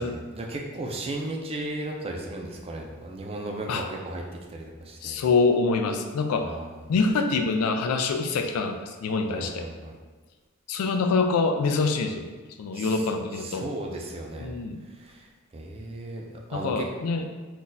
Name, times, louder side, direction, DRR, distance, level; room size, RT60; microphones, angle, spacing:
voice 1, 0.0-4.2 4.5-5.2 6.4-6.7 9.3-9.9 12.7-13.0 13.4-14.5 15.0-15.3 15.5-16.2 16.5-16.9, right 1 dB, 25° right, 0 dB, 0.4 m, -35 dB
voice 2, 5.0-6.5 6.9-9.6 10.7-12.3 12.6-13.7 14.4-14.8 16.5-17.3, left 4 dB, 80° left, 5 dB, 0.3 m, -25 dB
2.6 x 2.2 x 3.9 m, 1.4 s
head